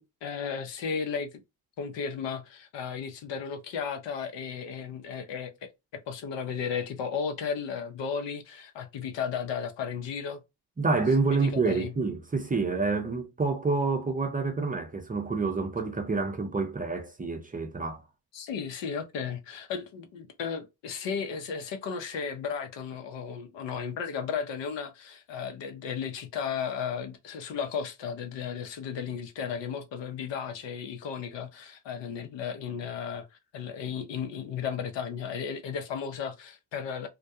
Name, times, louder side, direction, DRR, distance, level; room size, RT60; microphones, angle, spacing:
voice 1, 0.0-1.4 1.8-10.4 11.3-11.9 18.3-33.3 33.5-37.1, left 6 dB, 60° left, 0.8 m, -34 dB
voice 2, 10.8-18.0, right 4 dB, 15° right, 0.6 m, -28 dB
2.2 x 2.2 x 2.7 m
supercardioid pair, 60°, 48 cm